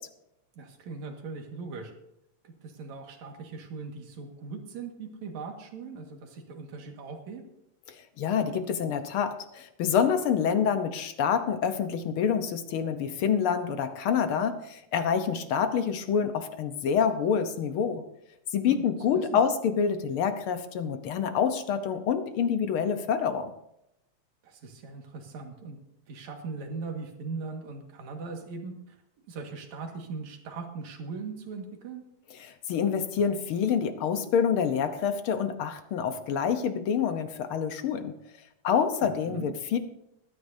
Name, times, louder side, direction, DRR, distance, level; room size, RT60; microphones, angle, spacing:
voice 1, 0.6-1.9 2.4-7.4 18.7-18.8 19.1-19.4 24.4-25.8 26.1-29.0 29.3-32.0 39.2-39.5, right 4 dB, 75° right, 3 dB, 3.1 m, -39 dB
voice 2, 8.2-18.0 18.5-23.5 32.4-38.1 38.6-39.8, left 7 dB, 65° left, 8 dB, 1.4 m, -27 dB
20.5 x 12.5 x 2.7 m, 0.82 s
omnidirectional pair, 3.3 m